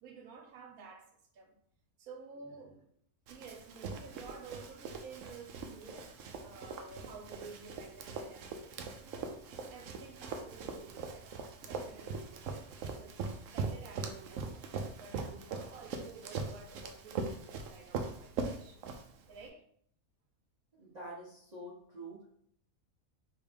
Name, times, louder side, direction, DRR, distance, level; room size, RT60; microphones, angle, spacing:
voice 1, 0.0-1.5 2.0-2.9 3.3-6.1 6.4-9.3 9.7-18.9 19.3-19.6, right 4 dB, 90° right, 4 dB, 1.2 m, -52 dB
Run, 3.3-19.4, right 4 dB, 70° right, 0.9 m, -41 dB
voice 2, 20.7-22.3, right 1 dB, 35° right, -7 dB, 0.9 m, -47 dB
4.9 x 2.9 x 3.5 m, 0.66 s
omnidirectional pair, 1.5 m